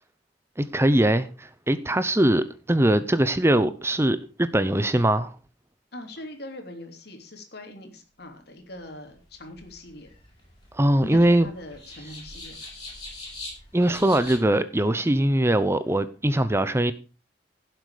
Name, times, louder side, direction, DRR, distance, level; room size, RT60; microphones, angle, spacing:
voice 1, 0.6-5.4 10.7-11.5 13.7-16.9, right 1 dB, 15° right, 0.7 m, -21 dB
voice 2, 5.9-10.1 11.0-12.7, left 1 dB, 65° left, 3.2 m, -42 dB
sound 1, 9.1-14.4, left 2 dB, 25° left, 7.9 m, -43 dB
16.5 x 7.7 x 4.9 m
head